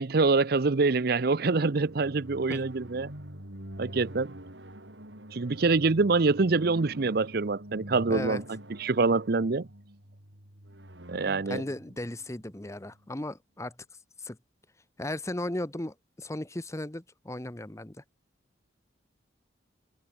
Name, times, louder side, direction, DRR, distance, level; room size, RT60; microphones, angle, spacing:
voice 1, 0.0-3.1 3.8-4.3 5.3-8.4 8.8-9.7 11.1-11.6, right 3 dB, 60° right, 0.7 m, -25 dB
sound 1, 1.5-13.1, right 1 dB, 80° right, 6.7 m, -46 dB
voice 2, 8.1-8.4 11.5-13.7 14.2-14.4 15.0-18.0, left 1 dB, 15° left, 1.0 m, -36 dB
head